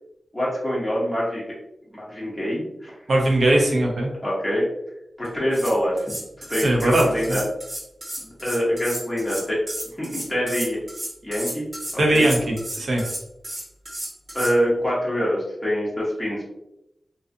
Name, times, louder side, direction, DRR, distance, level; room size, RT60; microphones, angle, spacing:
voice 1, 0.3-1.4 1.9-2.9 4.2-4.6 5.2-6.1 6.5-7.4 8.2-9.6 10.0-10.8 11.2-11.6 11.9-12.2 14.3-16.4, equal, 5° left, -7 dB, 0.7 m, -25 dB
voice 2, 3.1-4.1 6.6-7.4 12.0-13.0, right 1 dB, 65° right, 0 dB, 0.6 m, -20 dB
sound 1, 5.2-5.3 5.5-14.5, right 1 dB, 40° right, 1.1 m, -33 dB
2.4 x 2.4 x 2.5 m, 0.86 s
wide cardioid pair, 145°, 0 cm